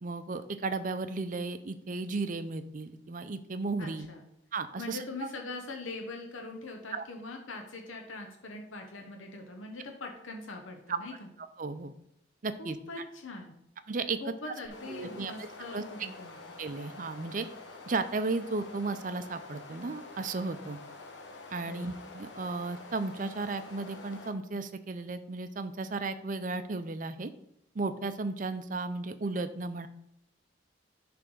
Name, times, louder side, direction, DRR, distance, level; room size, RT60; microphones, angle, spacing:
voice 1, 0.0-4.1 4.5-5.3 6.9-7.0 10.9-11.0 11.6-11.9 12.4-12.8 13.9-14.5 14.9-15.3 15.7-15.8 16.6-17.5 17.9-20.8 21.5-27.3 27.7-29.9, right 3 dB, 40° right, 10 dB, 0.5 m, -34 dB
voice 2, 3.8-4.2 4.7-11.3 12.6-13.6 14.2-16.6 21.6-22.0, left 2 dB, 90° left, 2 dB, 1.0 m, -42 dB
sound 1, 14.6-24.3, left 3 dB, 65° left, 1.2 m, -47 dB
9.8 x 3.4 x 6.2 m, 0.78 s
head